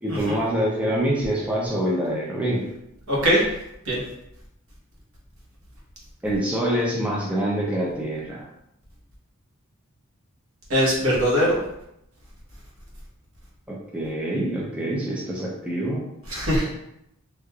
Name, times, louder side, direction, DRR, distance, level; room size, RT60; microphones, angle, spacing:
voice 1, 0.0-2.6 6.2-8.4 13.7-16.1, right 1 dB, 5° right, -5 dB, 0.4 m, -25 dB
voice 2, 3.1-3.4 3.8-4.0 10.7-11.6 16.3-16.7, equal, 70° right, -4 dB, 1.0 m, -21 dB
3.1 x 2.4 x 2.3 m, 0.81 s
head